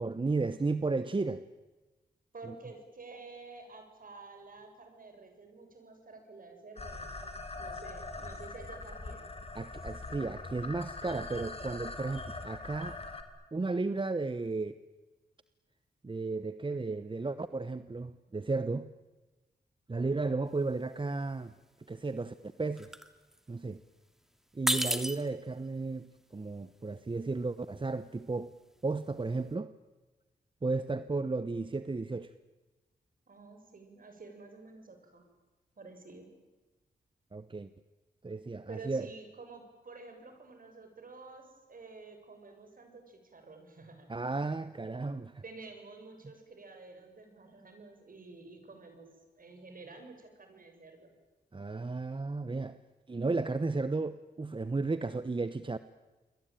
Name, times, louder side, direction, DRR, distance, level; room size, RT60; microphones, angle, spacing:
voice 1, 0.0-1.4 2.5-2.6 9.5-13.0 13.5-14.7 16.0-18.9 19.9-21.5 21.9-22.9 23.5-23.8 24.5-28.5 28.8-29.7 30.6-32.3 37.3-37.7 38.2-39.1 44.1-45.4 51.5-52.8 53.1-55.8, right 3 dB, 30° right, 1.1 m, -34 dB
voice 2, 2.3-9.3 33.3-35.2 35.8-36.3 38.7-44.4 45.4-51.1, right 3 dB, 55° right, 7.5 m, -50 dB
sound 1, 6.8-13.2, left 3 dB, 35° left, 3.5 m, -42 dB
sound 2, 20.5-20.7 21.0-21.6 22.0-24.2 24.5-29.5, equal, ahead, 2.5 m, -36 dB
28.5 x 23.0 x 9.2 m
cardioid pair, 60°, 17 cm